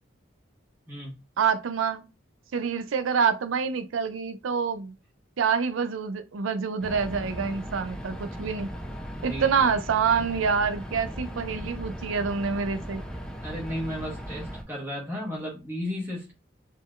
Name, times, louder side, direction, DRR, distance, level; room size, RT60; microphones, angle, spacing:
voice 1, 1.4-2.0 2.5-4.9 5.4-8.7 9.2-13.0, right 6 dB, 85° right, 0.4 m, -26 dB
sound 1, 6.8-14.6, equal, 5° left, 0.5 m, -38 dB
voice 2, 9.2-9.7 13.4-16.3, equal, 10° right, 1.2 m, -34 dB
4.1 x 3.7 x 2.4 m
head